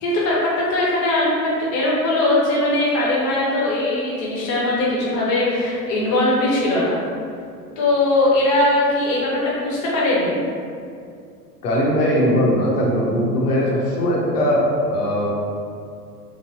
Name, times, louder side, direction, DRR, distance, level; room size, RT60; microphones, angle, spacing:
voice 1, 0.0-7.0 7.8-10.4, left 1 dB, 35° left, -5 dB, 0.9 m, -20 dB
voice 2, 11.6-15.3, equal, 70° left, -3 dB, 0.8 m, -19 dB
3.1 x 2.2 x 2.6 m, 2.3 s
figure-of-eight pair, 90°, 49 cm